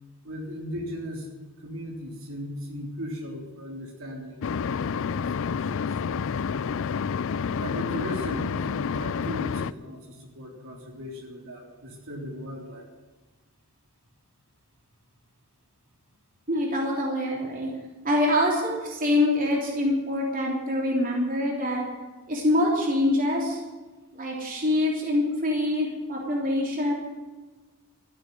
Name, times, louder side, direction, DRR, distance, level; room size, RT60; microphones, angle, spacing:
voice 1, 0.2-1.3 1.6-6.0 7.6-12.9, equal, 65° right, 0 dB, 3.6 m, -37 dB
sound 1, 4.4-9.7, left 6 dB, 65° left, 0.4 m, -29 dB
voice 2, 16.5-17.7 18.0-21.9 22.3-23.6 24.1-26.9, left 1 dB, 40° right, -2 dB, 3.3 m, -25 dB
14.0 x 8.4 x 10.0 m, 1.2 s
head